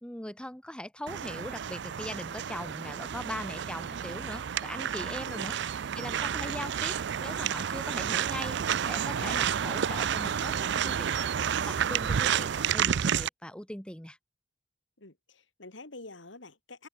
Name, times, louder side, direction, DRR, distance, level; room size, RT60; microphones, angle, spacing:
voice 1, 0.0-5.5 6.0-6.9 7.2-8.6 8.8-14.2, left 1 dB, 5° left, 2.0 m, -40 dB
sound 1, 1.1-13.3, right 8 dB, 65° right, 0.4 m, -30 dB
voice 2, 15.0-16.9, left 2 dB, 70° left, 3.1 m, -47 dB
head